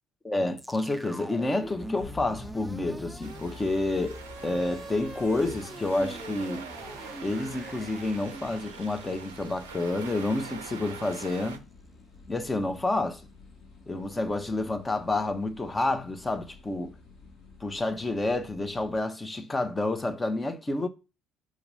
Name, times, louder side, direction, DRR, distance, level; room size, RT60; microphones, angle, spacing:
voice 1, 0.2-6.7 7.2-11.6 12.3-13.2 13.9-16.9 17.6-20.9, left 2 dB, 20° left, 1.0 m, -29 dB
sound 1, 0.6-10.8, right 1 dB, 5° right, 0.5 m, -44 dB
sound 2, 1.4-19.0, left 3 dB, 60° left, 1.6 m, -51 dB
sound 3, 3.2-11.6, right 6 dB, 85° right, 0.5 m, -44 dB
6.3 x 2.9 x 5.3 m
hypercardioid pair, 55°, 0 cm